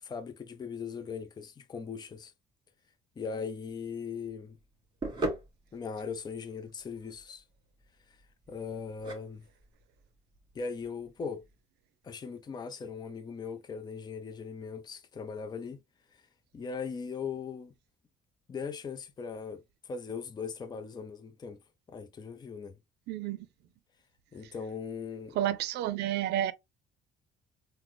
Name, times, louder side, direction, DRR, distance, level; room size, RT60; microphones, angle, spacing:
voice 1, 0.0-2.3 3.2-4.6 5.7-7.4 8.1-8.2 8.5-9.4 10.5-11.4 12.0-15.8 16.1-16.2 16.5-17.7 18.5-21.6 21.9-22.8 24.3-25.4, left 5 dB, 25° left, 0.5 m, -39 dB
sound 1, 3.7-11.6, right 1 dB, 25° right, 1.7 m, -41 dB
voice 2, 23.1-23.5 25.4-26.5, right 12 dB, 75° right, 0.5 m, -30 dB
3.8 x 2.1 x 3.1 m
cardioid pair, 110°, 17 cm